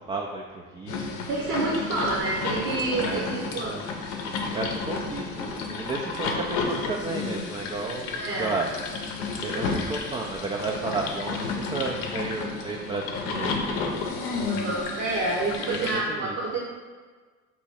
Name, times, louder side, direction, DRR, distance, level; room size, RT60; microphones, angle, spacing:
voice 1, 0.0-2.1 2.9-3.8 4.5-8.7 9.4-14.1 15.7-16.4, right 3 dB, 20° right, 0 dB, 0.3 m, -33 dB
sound 1, 0.9-16.0, left 4 dB, 70° left, 0.6 m, -32 dB
voice 2, 1.3-3.8 8.2-8.5 14.4-16.6, right 2 dB, 60° right, -5 dB, 1.0 m, -28 dB
3.0 x 2.6 x 4.4 m, 1.4 s
hypercardioid pair, 70°, 33 cm